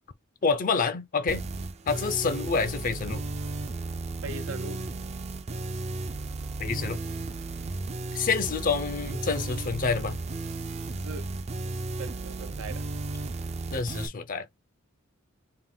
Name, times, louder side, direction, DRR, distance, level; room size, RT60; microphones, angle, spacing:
voice 1, 0.4-1.5 1.9-3.2 6.6-7.0 8.1-10.2 13.7-14.7, left 5 dB, 40° left, 0.4 m, -28 dB
sound 1, 1.3-14.1, right 2 dB, 30° right, 0.4 m, -34 dB
voice 2, 4.2-4.8 10.9-11.3 12.0-12.9, right 3 dB, 90° right, 0.6 m, -40 dB
3.5 x 2.5 x 3.6 m
head